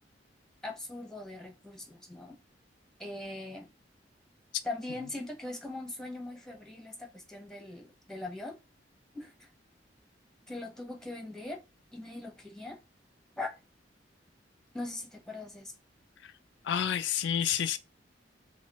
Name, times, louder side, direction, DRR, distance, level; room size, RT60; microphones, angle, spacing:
voice 1, 0.6-2.4 3.0-3.7 4.6-8.6 9.1-9.5 10.5-11.6 11.9-12.8 13.4-13.6 14.7-15.7, left 2 dB, 5° left, 1.0 m, -41 dB
voice 2, 16.6-17.8, left 9 dB, 70° left, 0.3 m, -29 dB
3.0 x 2.8 x 4.1 m
head